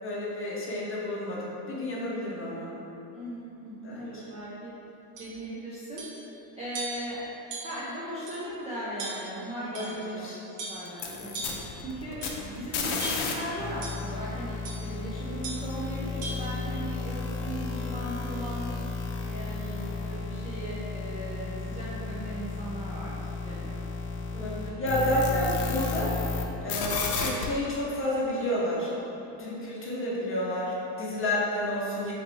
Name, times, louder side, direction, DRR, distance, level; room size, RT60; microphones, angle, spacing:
voice 1, 0.0-2.7 3.8-4.2 9.7-10.4 12.1-12.6 24.3-26.2 26.6-28.9 29.4-32.1, left 1 dB, 25° left, -6 dB, 0.8 m, -30 dB
voice 2, 3.1-4.7 5.2-6.1 6.6-7.3 7.6-10.3 10.7-12.2 12.5-18.7 19.3-23.8 29.3-29.6, right 1 dB, 15° right, -9 dB, 0.3 m, -38 dB
sound 1, 5.2-5.3 6.0-6.2 6.7-7.1 7.5-7.9 8.3-8.4 9.0-9.4 9.7-10.1 10.6-10.9 11.3-11.7 12.2-12.5 13.0-13.4 13.8-14.1 14.6-14.9 15.4-15.7 16.2-16.4, right 2 dB, 85° right, 0.9 m, -38 dB
sound 2, 10.9-13.3 13.6-26.4 26.7-27.4, left 4 dB, 75° left, 0.7 m, -33 dB
3.3 x 2.9 x 4.0 m, 3.0 s
cardioid pair, 140°, 48 cm